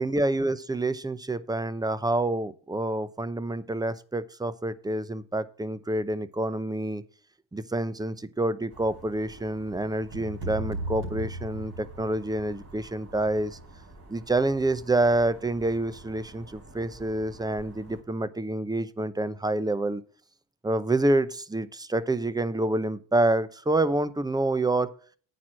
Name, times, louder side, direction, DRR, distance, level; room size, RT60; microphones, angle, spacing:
voice 1, 0.0-7.0 7.5-13.6 14.1-20.0 20.6-24.9, right 2 dB, 10° right, 15 dB, 0.7 m, -27 dB
sound 1, 8.7-18.0, right 2 dB, 35° right, 3.7 m, -50 dB
sound 2, 10.1-12.4, right 1 dB, 65° right, 4.6 m, -35 dB
9.2 x 4.7 x 7.6 m, 0.43 s
supercardioid pair, 75°, 43 cm